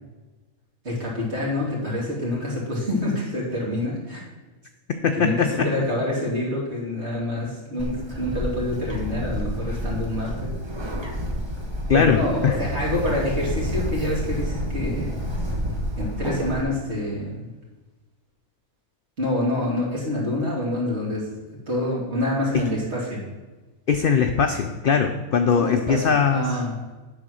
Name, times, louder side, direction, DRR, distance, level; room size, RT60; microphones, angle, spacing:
voice 1, 0.8-4.2 5.2-10.5 11.9-15.5 16.0-17.5 19.2-21.3 21.7-23.3 25.5-26.0 26.3-26.7, left 1 dB, 45° right, -5 dB, 2.7 m, -27 dB
voice 2, 5.0-5.7 11.9-12.6 23.9-26.5, left 6 dB, 75° left, 6 dB, 0.5 m, -20 dB
Bird, 7.8-16.6, equal, 20° right, 1.0 m, -29 dB
10.0 x 4.1 x 6.3 m, 1.2 s
omnidirectional pair, 1.5 m